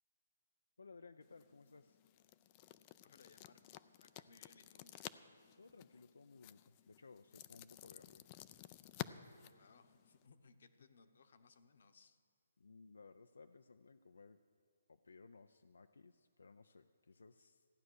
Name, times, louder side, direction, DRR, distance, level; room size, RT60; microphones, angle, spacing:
voice 1, 0.8-2.0 5.6-8.3 12.6-14.4 14.9-17.7, left 4 dB, 90° left, 8 dB, 0.5 m, -60 dB
sound 1, 1.2-10.3, left 15 dB, 25° left, 0.3 m, -53 dB
voice 2, 3.0-4.9 9.5-12.2, left 4 dB, 60° left, 9 dB, 1.0 m, -66 dB
15.0 x 9.4 x 6.3 m, 2.3 s
hypercardioid pair, 160°, 0 cm